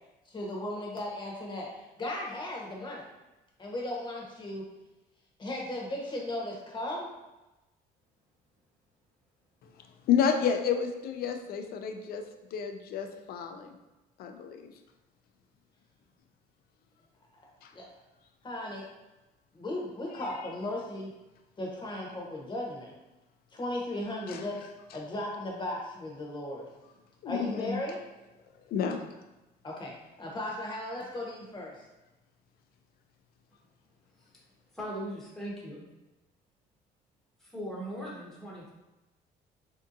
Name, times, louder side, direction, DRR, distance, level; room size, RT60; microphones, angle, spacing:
voice 1, 0.3-1.7 2.0-3.0 3.6-4.6 5.4-7.1 17.7-17.8 18.4-18.9 19.6-21.1 21.6-22.9 23.5-24.6 24.9-26.7 27.2-28.0 29.6-29.9 30.2-31.7, left 1 dB, 25° left, -2 dB, 0.9 m, -36 dB
voice 2, 10.1-12.2 12.5-13.8 14.2-14.7 17.6-17.7 24.3-24.5 27.2-27.8 28.7-29.0, left 7 dB, 65° left, 6 dB, 0.4 m, -30 dB
voice 3, 34.7-35.9 37.4-38.7, equal, ahead, -5 dB, 0.9 m, -39 dB
3.5 x 2.7 x 2.5 m, 1.0 s
cardioid pair, 110°, 17 cm